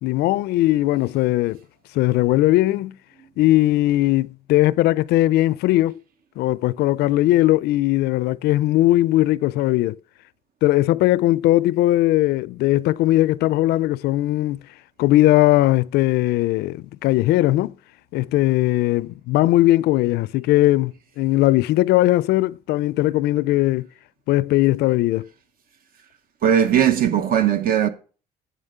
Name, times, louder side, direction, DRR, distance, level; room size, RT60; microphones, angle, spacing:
voice 1, 0.0-1.6 1.9-2.9 3.4-6.0 6.4-10.0 10.6-14.6 15.0-17.7 18.1-23.9 24.3-25.3, left 16 dB, 75° left, 0.4 m, -19 dB
voice 2, 26.4-27.9, right 9 dB, 60° right, 0.9 m, -18 dB
8.7 x 7.3 x 6.6 m
cardioid pair, 110°, 17 cm